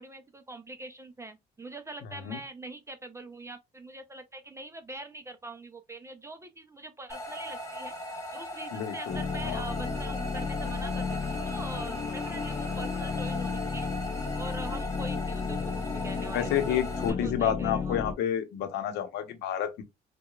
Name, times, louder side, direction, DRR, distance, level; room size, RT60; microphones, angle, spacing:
voice 1, 0.0-7.9 8.3-13.9 14.4-16.8 17.1-18.0, right 2 dB, 15° right, 0.4 m, -43 dB
sound 1, 7.1-17.1, left 1 dB, 20° left, 1.2 m, -38 dB
voice 2, 8.7-9.6 16.3-19.8, left 10 dB, 80° left, 0.8 m, -30 dB
sound 2, 9.1-18.1, left 5 dB, 35° left, 0.5 m, -33 dB
4.7 x 2.2 x 2.3 m
cardioid pair, 110°, 17 cm